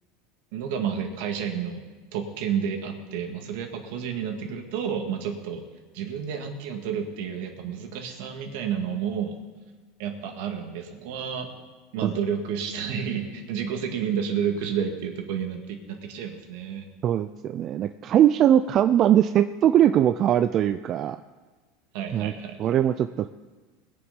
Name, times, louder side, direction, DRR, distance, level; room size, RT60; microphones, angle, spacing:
voice 1, 0.5-1.8 2.1-5.6 5.9-9.4 10.0-11.5 11.9-16.9 21.9-22.8, right 7 dB, 70° right, 4 dB, 1.9 m, -30 dB
voice 2, 17.0-21.2 22.1-22.3 22.6-23.3, right 10 dB, 35° right, 10 dB, 0.4 m, -21 dB
20.5 x 7.1 x 5.3 m, 1.3 s
supercardioid pair, 140°, 0 cm